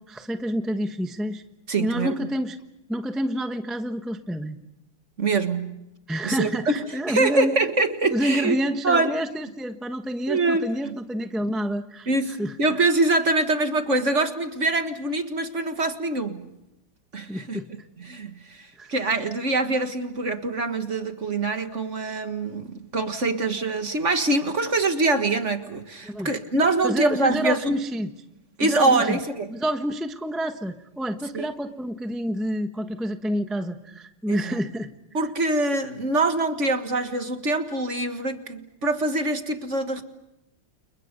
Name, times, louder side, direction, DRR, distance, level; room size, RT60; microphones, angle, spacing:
voice 1, 0.0-1.4 1.8-2.6 2.9-4.6 6.1-7.5 8.1-12.1 12.4-12.5 17.3-17.7 18.8-18.9 26.0-26.3 26.8-28.1 28.6-29.2 29.5-34.9, equal, ahead, 0.9 m, -28 dB
voice 2, 1.7-2.3 5.2-5.8 6.2-8.6 8.8-9.1 10.3-10.9 12.1-16.5 17.1-17.6 18.0-27.8 28.6-29.5 31.3-31.5 34.3-34.6 35.1-40.0, right 2 dB, 40° right, 1.8 m, -24 dB
30.0 x 29.5 x 5.3 m
omnidirectional pair, 2.2 m